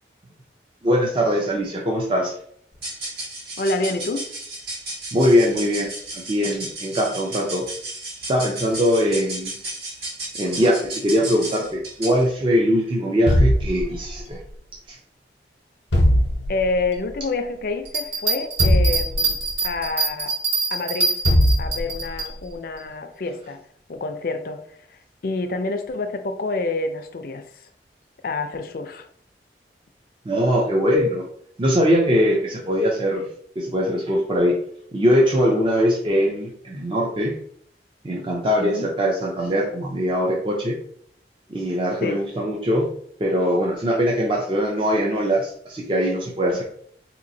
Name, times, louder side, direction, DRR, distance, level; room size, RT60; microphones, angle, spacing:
voice 1, 0.8-2.3 5.1-7.6 8.3-9.5 10.4-14.4 14.9-15.0 30.3-31.2 31.6-33.3 33.6-34.6 34.9-37.3 38.0-40.7 41.5-42.9 43.2-46.6, equal, 30° right, -2 dB, 0.5 m, -21 dB
sound 1, 2.7-12.3, right 2 dB, 60° right, 1.5 m, -34 dB
voice 2, 3.6-4.3 16.5-20.3 20.7-21.2 21.6-23.6 23.9-24.6 24.9-27.6 28.2-29.1 38.6-38.9 42.0-42.2, left 3 dB, 55° left, 7 dB, 0.4 m, -28 dB
sound 2, 13.3-14.4 15.9-16.9 18.6-19.7 21.3-22.2, equal, 85° left, 0.7 m, -20 dB
sound 3, 17.8-22.3, right 3 dB, 85° right, 1.4 m, -24 dB
4.0 x 2.9 x 2.6 m, 0.63 s
head